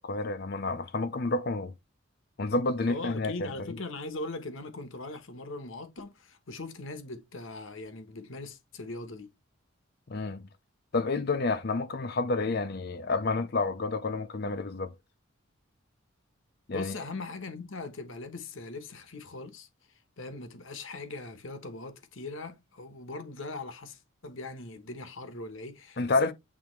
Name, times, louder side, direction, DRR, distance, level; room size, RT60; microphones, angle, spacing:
voice 1, 0.0-1.7 2.4-3.5 10.1-10.4 10.9-14.9 16.7-16.9 26.0-26.3, left 3 dB, 45° left, 0.6 m, -29 dB
voice 2, 2.9-9.3 16.7-26.3, left 3 dB, 65° left, 1.1 m, -40 dB
8.6 x 3.5 x 3.2 m
head